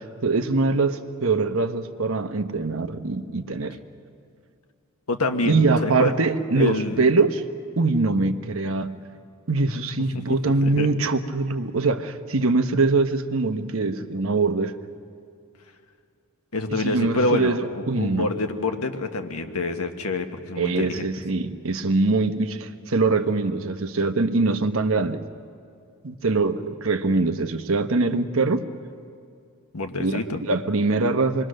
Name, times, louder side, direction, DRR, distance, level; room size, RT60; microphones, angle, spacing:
voice 1, 0.0-3.8 5.5-7.4 7.8-9.0 9.5-14.7 16.8-18.3 20.6-25.2 26.0-28.6 30.0-31.5, right 3 dB, 65° right, 8 dB, 1.0 m, -23 dB
voice 2, 5.1-6.1 6.6-7.0 10.1-10.2 10.6-10.9 16.5-21.0 29.7-30.4, left 2 dB, 80° left, 6 dB, 1.5 m, -27 dB
27.5 x 21.5 x 6.5 m, 2.3 s
head